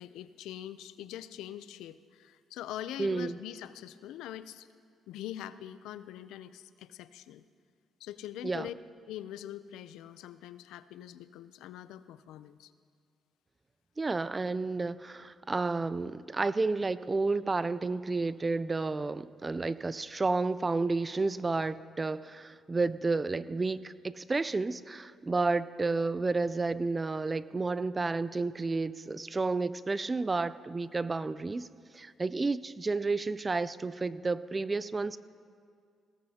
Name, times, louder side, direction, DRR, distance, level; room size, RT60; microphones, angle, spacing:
voice 1, 0.0-4.7 5.1-7.4 8.0-8.7 9.1-12.7 25.4-25.5, left 11 dB, 90° left, 14 dB, 0.4 m, -43 dB
voice 2, 3.0-3.4 8.4-8.7 14.0-31.7 31.9-35.2, right 3 dB, 25° right, 16 dB, 0.4 m, -31 dB
20.0 x 17.0 x 2.8 m, 2.2 s
cardioid pair, 90°, 0 cm